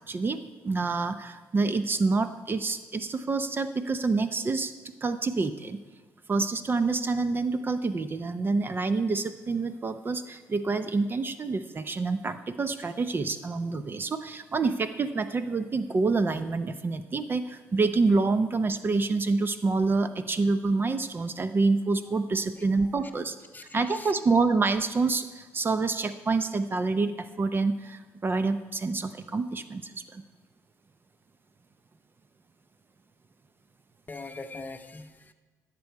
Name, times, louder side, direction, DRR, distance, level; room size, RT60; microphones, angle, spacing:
voice 1, 0.0-4.7 5.0-5.8 6.3-23.4 23.7-30.2, right 3 dB, 35° right, 11 dB, 0.6 m, -27 dB
voice 2, 22.6-23.2 23.5-24.1 34.1-35.3, left 3 dB, 25° left, 7 dB, 0.9 m, -43 dB
16.0 x 6.9 x 4.6 m, 1.3 s
cardioid pair, 85°, 6 cm